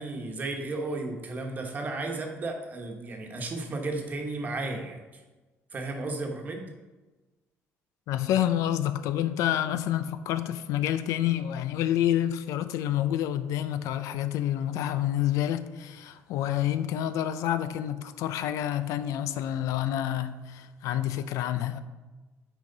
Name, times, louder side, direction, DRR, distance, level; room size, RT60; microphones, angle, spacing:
voice 1, 0.0-5.2 5.7-6.7, right 2 dB, 30° right, 1.2 m, -34 dB
voice 2, 8.1-21.8, left 11 dB, 85° left, 0.5 m, -28 dB
8.9 x 5.0 x 4.0 m
cardioid pair, 145°, 5 cm